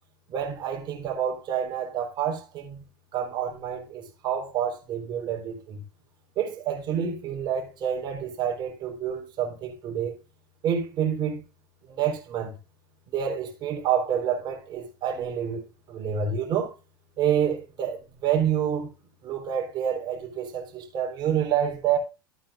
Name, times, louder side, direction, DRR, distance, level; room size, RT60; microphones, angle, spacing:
voice 1, 0.3-2.8 3.1-5.8 6.4-10.1 10.6-11.4 11.9-12.5 13.1-15.6 15.9-16.7 17.2-18.9 19.2-22.0, right 8 dB, 40° right, 3.9 m, -28 dB
13.5 x 8.7 x 2.4 m
figure-of-eight pair, 80°, 12 cm